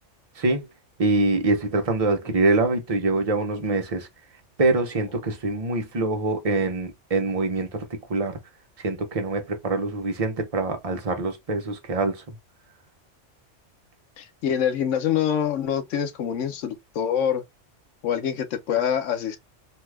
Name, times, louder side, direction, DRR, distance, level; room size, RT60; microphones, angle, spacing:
voice 1, 0.4-0.7 1.0-4.1 4.6-7.8 8.1-8.4 8.8-12.2, right 3 dB, 35° right, 0.7 m, -24 dB
voice 2, 14.2-17.4 18.0-19.4, left 8 dB, 80° left, 0.9 m, -25 dB
2.8 x 2.3 x 3.2 m
omnidirectional pair, 1.3 m